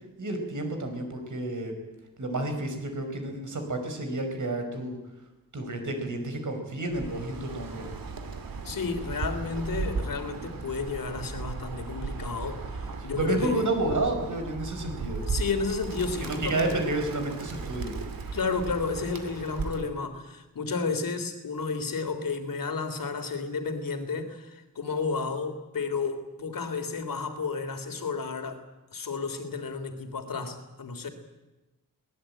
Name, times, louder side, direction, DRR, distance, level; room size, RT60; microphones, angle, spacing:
voice 1, 0.2-1.7 2.2-5.0 5.5-7.9 13.2-15.2 16.2-17.9, right 2 dB, 60° right, 5 dB, 5.4 m, -30 dB
Bird, 6.9-20.0, right 4 dB, 80° right, 2.6 m, -36 dB
voice 2, 8.6-13.6 15.3-16.8 18.3-28.6 28.9-31.1, left 4 dB, 70° left, 8 dB, 3.2 m, -32 dB
23.0 x 19.5 x 9.0 m, 1.0 s
wide cardioid pair, 175°, 35 cm